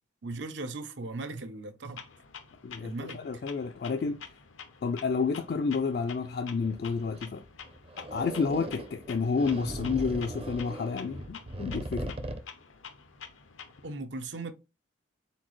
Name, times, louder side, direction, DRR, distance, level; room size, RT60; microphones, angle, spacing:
voice 1, 0.2-2.0 2.8-3.2 13.8-14.5, right 3 dB, 70° right, 0.7 m, -38 dB
Clock, 2.0-14.0, left 6 dB, 90° left, 0.7 m, -48 dB
voice 2, 2.6-4.2 4.8-7.4 8.1-12.2, left 5 dB, 55° left, 0.3 m, -30 dB
sound 1, 6.6-12.4, right 1 dB, 30° right, 0.5 m, -39 dB
4.3 x 4.0 x 3.1 m
head